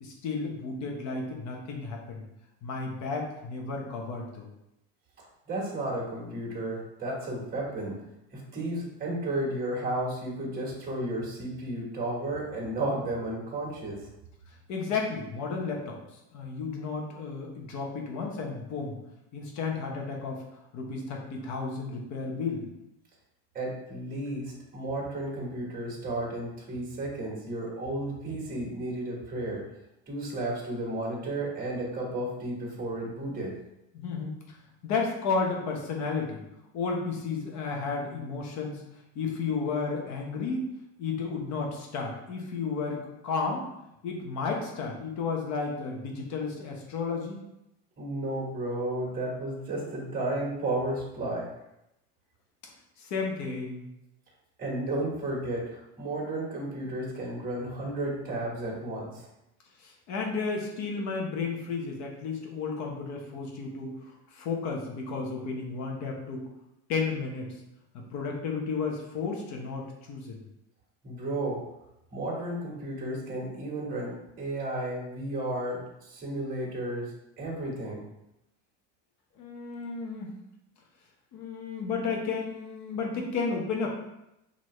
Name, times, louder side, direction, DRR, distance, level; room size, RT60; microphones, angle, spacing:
voice 1, 0.0-2.2 2.6-4.5 14.7-16.0 16.3-19.0 19.3-20.4 20.7-22.6 33.9-34.6 34.8-36.4 36.7-38.8 39.1-40.7 41.0-43.6 44.0-47.4 53.0-53.9 59.8-63.9 64.3-66.4 66.9-67.5 68.1-70.4 79.4-80.3 81.3-83.9, left 4 dB, 50° left, 0 dB, 1.0 m, -32 dB
voice 2, 5.5-8.0 8.3-14.1 23.5-29.6 30.1-33.5 48.0-51.5 54.6-59.3 71.0-71.6 72.1-77.1 77.4-78.0, right 1 dB, 25° right, -4 dB, 1.5 m, -33 dB
4.6 x 2.9 x 3.2 m, 0.87 s
supercardioid pair, 120°, 35 cm